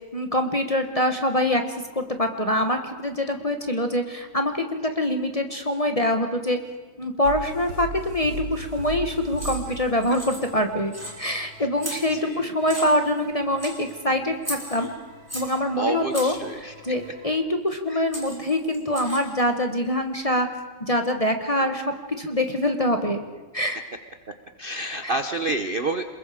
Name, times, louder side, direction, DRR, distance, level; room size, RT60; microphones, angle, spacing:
voice 1, 0.1-6.6 7.0-14.9 15.3-16.3 16.6-20.5 20.8-23.2 23.5-23.8 25.0-25.2, left 1 dB, 25° left, 5 dB, 0.9 m, -24 dB
sound 1, 7.2-17.4, right 2 dB, 65° right, 2.6 m, -40 dB
sound 2, 9.4-9.8 10.0-10.6 10.9-11.4 11.8-12.3 12.7-13.2 13.6-13.9 14.4-15.6 16.1-16.5 17.7-17.8 18.1-19.4, equal, 5° right, 3.7 m, -36 dB
voice 2, 12.1-12.5 15.8-17.1 17.9-18.0 21.6-21.7 24.6-26.0, right 2 dB, 80° right, 7 dB, 0.4 m, -29 dB
27.0 x 21.5 x 5.0 m, 1.3 s
omnidirectional pair, 2.3 m